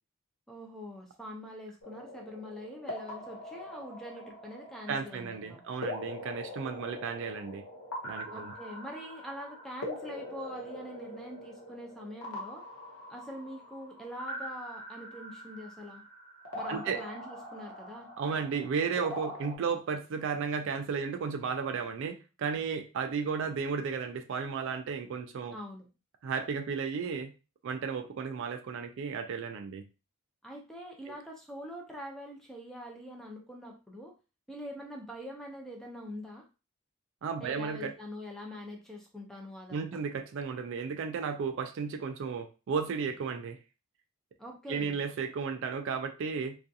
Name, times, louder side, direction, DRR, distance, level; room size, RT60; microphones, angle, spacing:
voice 1, 0.5-5.6 8.3-12.6 13.1-16.0 16.5-18.1 25.5-25.9 30.4-34.1 34.5-36.4 37.4-39.9 44.4-45.0, equal, ahead, 0 dB, 0.5 m, -44 dB
sound 1, 1.8-19.6, left 1 dB, 80° left, 0.8 m, -43 dB
voice 2, 4.9-7.6 8.0-8.5 16.7-17.0 18.2-25.6 26.2-27.3 27.6-29.9 31.1-31.2 37.2-37.9 39.7-43.6 44.7-46.6, right 5 dB, 60° right, 7 dB, 0.3 m, -34 dB
2.4 x 2.3 x 2.6 m, 0.31 s
head